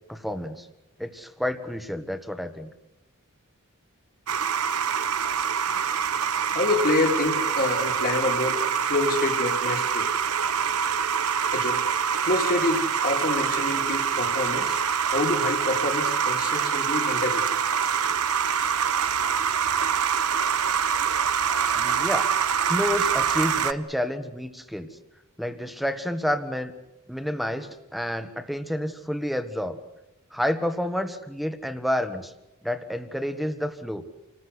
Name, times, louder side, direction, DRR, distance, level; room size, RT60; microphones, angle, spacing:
voice 1, 0.1-0.7 1.0-2.7 21.7-22.3 22.6-24.9 25.4-26.7 27.1-29.8 30.3-32.3 32.6-34.0, equal, ahead, 1.5 m, -29 dB
sound 1, 4.3-23.7, right 7 dB, 85° right, 1.0 m, -25 dB
voice 2, 5.7-10.1 11.5-14.8 15.1-17.4, left 2 dB, 40° left, 2.5 m, -27 dB
28.5 x 20.0 x 8.1 m
head